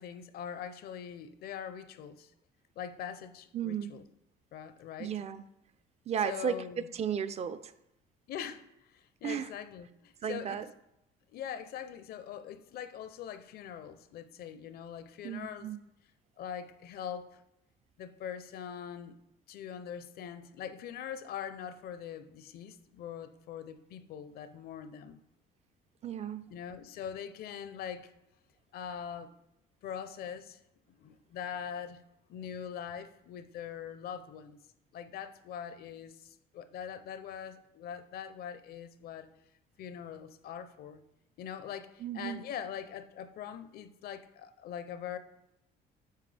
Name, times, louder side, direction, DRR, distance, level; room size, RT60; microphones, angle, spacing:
voice 1, 0.0-2.3 2.8-4.0 4.5-5.1 6.2-6.9 8.3-10.6 11.3-15.7 16.4-17.4 18.0-19.2 19.5-25.2 26.5-28.1 28.7-29.3 29.8-30.6 30.9-32.0 32.3-34.6 34.9-39.3 39.8-41.0 41.4-45.2, left 8 dB, 65° left, 11 dB, 0.6 m, -42 dB
voice 2, 3.5-4.0 5.0-5.5 6.1-6.6 6.9-7.7 9.2-9.5 10.2-10.7 15.2-15.8 26.0-26.5 42.0-42.4, right 8 dB, 40° right, 12 dB, 0.4 m, -34 dB
9.1 x 4.5 x 3.3 m, 0.85 s
cardioid pair, 110°, 17 cm